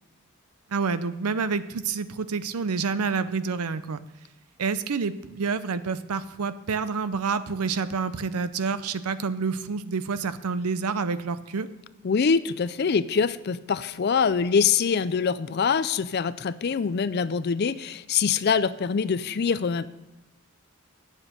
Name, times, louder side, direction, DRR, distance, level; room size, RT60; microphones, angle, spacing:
voice 1, 0.7-4.0 4.6-11.7, right 5 dB, 90° right, 13 dB, 0.6 m, -28 dB
voice 2, 12.0-19.9, left 6 dB, 45° left, 15 dB, 0.4 m, -24 dB
8.9 x 7.4 x 6.4 m, 1.0 s
head